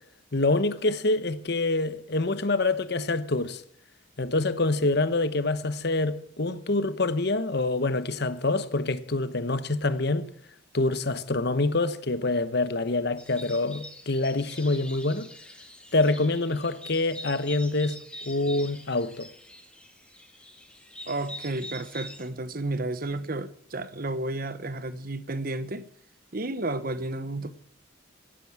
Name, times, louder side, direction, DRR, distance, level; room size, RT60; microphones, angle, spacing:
voice 1, 0.3-3.6 4.2-10.3 10.7-15.3 15.9-19.3, left 2 dB, 55° left, 1.0 m, -26 dB
sound 1, 13.2-22.3, left 1 dB, 5° left, 1.8 m, -44 dB
voice 2, 21.1-25.9 26.3-27.5, right 2 dB, 45° right, 1.1 m, -32 dB
17.0 x 9.3 x 7.4 m
head